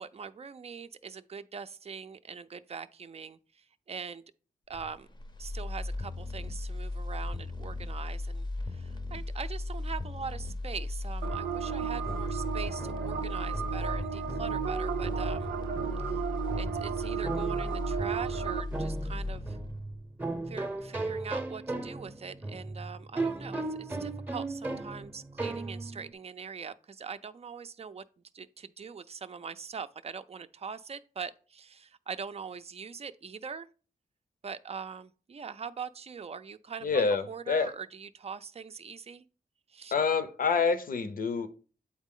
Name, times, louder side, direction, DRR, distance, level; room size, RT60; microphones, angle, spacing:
voice 1, 0.0-4.2 4.7-5.1 5.4-15.5 16.1-16.2 16.6-19.6 20.5-28.0 28.3-33.7 34.4-39.2 39.7-39.9, right 6 dB, 40° right, 0.4 m, -42 dB
sound 1, 4.7-20.8 21.2-21.3, left 2 dB, 30° left, 0.6 m, -36 dB
sound 2, 11.2-18.6, right 9 dB, 90° right, 0.6 m, -34 dB
sound 3, 11.9-26.1, right 2 dB, 10° right, 0.7 m, -38 dB
voice 2, 36.8-37.7 39.9-41.5, left 5 dB, 65° left, 0.7 m, -27 dB
8.7 x 4.0 x 3.7 m
wide cardioid pair, 110°, 16 cm